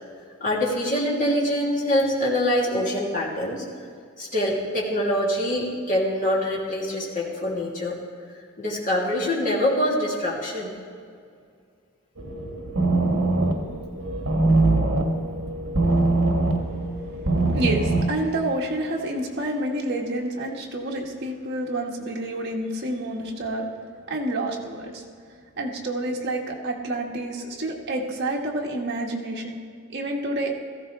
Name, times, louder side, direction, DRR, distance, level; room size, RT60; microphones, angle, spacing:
voice 1, 0.4-3.6 4.2-7.9 8.6-10.7, left 1 dB, 40° left, -5 dB, 2.9 m, -24 dB
sound 1, 12.2-18.0, right 2 dB, 70° right, 1.6 m, -23 dB
voice 2, 17.5-23.7 24.1-25.0 25.6-29.6 29.9-30.5, right 1 dB, 55° right, -1 dB, 1.7 m, -28 dB
16.5 x 14.5 x 3.4 m, 2.2 s
head